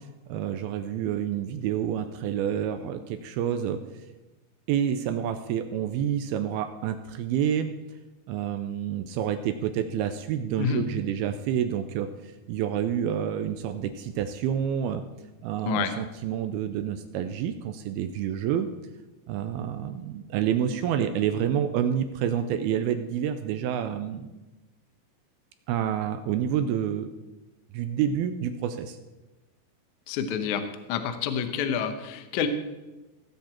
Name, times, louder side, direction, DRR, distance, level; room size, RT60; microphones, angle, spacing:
voice 1, 0.3-4.1 4.7-7.7 8.3-15.0 15.4-18.7 19.3-24.3 25.7-27.1 27.7-29.0, right 9 dB, 80° right, 9 dB, 2.3 m, -28 dB
voice 2, 15.6-15.9 30.1-32.5, left 7 dB, 80° left, 7 dB, 1.7 m, -28 dB
17.5 x 7.9 x 4.4 m, 1.1 s
omnidirectional pair, 4.8 m